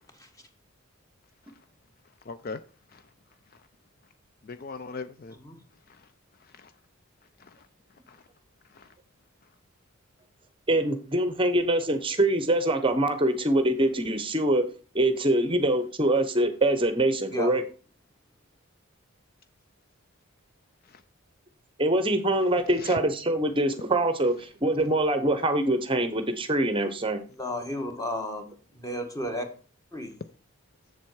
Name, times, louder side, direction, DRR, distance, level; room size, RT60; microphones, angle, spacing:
voice 1, 2.3-2.6 2.9-3.0 4.4-5.4 5.9-6.1 6.4-6.7 7.4-7.7 8.1-8.2 8.7-8.9 20.9-21.0 22.8-23.0, left 4 dB, 40° left, 0.4 m, -40 dB
voice 2, 10.7-14.6 14.9-17.6 21.8-27.2, right 1 dB, 25° right, 0.8 m, -24 dB
voice 3, 27.3-29.5 29.9-30.1, left 1 dB, 15° left, 1.4 m, -33 dB
7.4 x 7.3 x 4.6 m
head